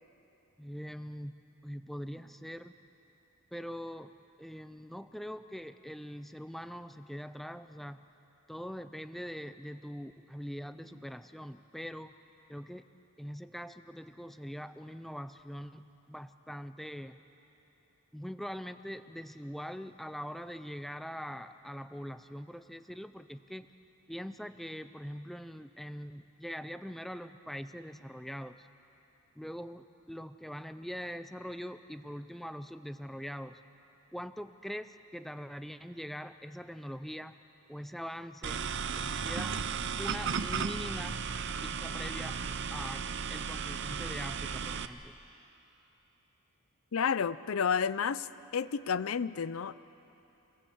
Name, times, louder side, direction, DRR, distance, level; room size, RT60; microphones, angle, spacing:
voice 1, 0.6-2.7 3.5-4.1 4.4-8.1 8.5-12.1 12.5-12.8 13.2-17.2 18.1-23.7 24.1-28.7 29.4-33.6 34.1-37.4 37.7-38.7 38.9-39.6 40.0-41.2 41.6-42.4 42.7-45.2, equal, ahead, 10 dB, 0.4 m, -42 dB
sound 1, 38.4-44.9, right 6 dB, 55° right, 0.7 m, -35 dB
voice 2, 46.9-48.3 48.5-49.7, left 6 dB, 70° left, 16 dB, 0.5 m, -30 dB
27.0 x 17.5 x 7.9 m, 2.9 s
head